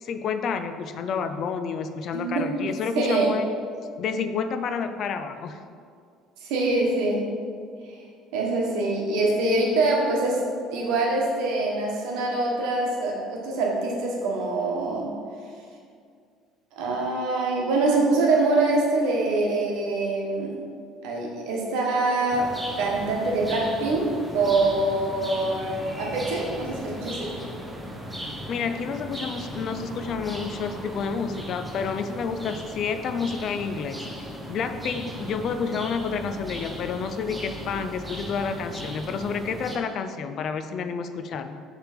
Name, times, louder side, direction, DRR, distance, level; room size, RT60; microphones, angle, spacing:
voice 1, 0.0-3.4 4.0-5.6 28.5-41.6, left 6 dB, 50° left, 9 dB, 0.4 m, -30 dB
voice 2, 2.1-2.5 2.9-3.4 6.4-7.3 7.9-8.0 8.3-10.4 10.7-15.1 16.8-20.5 21.0-22.5 22.8-27.3, right 2 dB, 80° right, -2 dB, 1.3 m, -24 dB
sound 1, 22.3-39.8, equal, 10° right, 0.7 m, -37 dB
6.2 x 3.3 x 5.1 m, 2.2 s
cardioid pair, 120°, 0 cm